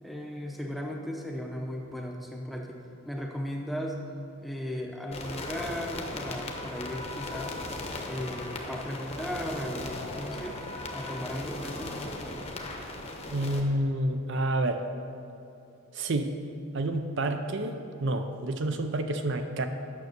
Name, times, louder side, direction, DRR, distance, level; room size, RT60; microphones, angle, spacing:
voice 1, 0.0-4.0 4.4-7.6 8.1-10.6 10.9-11.9, equal, ahead, 1 dB, 0.7 m, -36 dB
sound 1, 5.1-13.6, left 2 dB, 30° left, 0.9 m, -37 dB
voice 2, 13.3-14.9 15.9-16.3 16.7-19.7, right 1 dB, 55° right, 7 dB, 0.5 m, -29 dB
9.4 x 6.5 x 6.5 m, 2.6 s
head